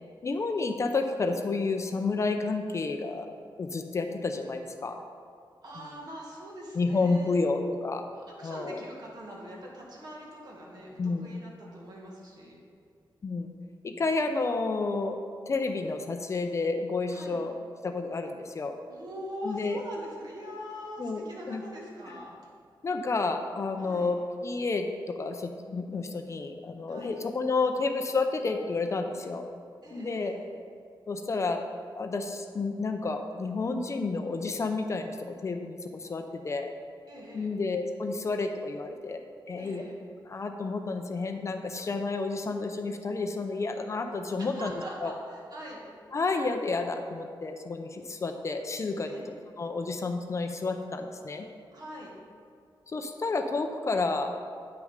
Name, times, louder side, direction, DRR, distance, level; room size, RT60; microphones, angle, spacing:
voice 1, 0.2-3.3 3.6-5.0 5.8-5.9 6.7-8.1 8.4-8.8 11.0-11.3 13.2-13.5 13.8-15.2 15.5-17.5 17.8-18.7 19.4-19.8 21.0-21.6 22.8-29.5 29.9-30.3 31.1-31.7 31.9-35.2 35.4-36.7 37.3-39.2 39.5-39.8 40.3-45.1 46.1-51.5 52.9-54.4, left 3 dB, 35° left, 6 dB, 0.5 m, -30 dB
voice 2, 5.6-7.4 8.1-12.6 17.1-17.4 18.9-22.3 23.8-24.1 26.9-27.2 29.8-30.5 37.1-37.5 39.6-40.0 44.4-45.8 49.1-49.3 51.7-52.1, equal, 55° right, -3 dB, 1.9 m, -43 dB
9.3 x 6.3 x 5.1 m, 2.2 s
wide cardioid pair, 180°, 8 cm